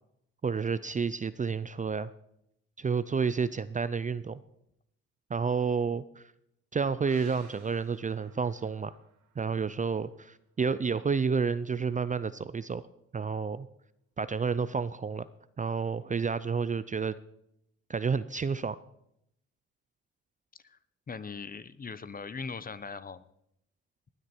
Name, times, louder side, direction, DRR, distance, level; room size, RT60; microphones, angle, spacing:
voice 1, 0.4-2.1 2.8-4.4 5.3-6.2 6.7-9.0 9.4-12.8 13.1-13.7 14.2-15.3 15.6-17.1 17.9-18.8, right 5 dB, 25° right, 15 dB, 0.5 m, -30 dB
sound 1, 7.1-10.5 10.8-10.9, right 7 dB, 70° right, 2.6 m, -57 dB
voice 2, 21.1-23.2, left 5 dB, 30° left, 15 dB, 0.8 m, -40 dB
19.0 x 9.6 x 4.5 m, 0.76 s
cardioid pair, 90°, 30 cm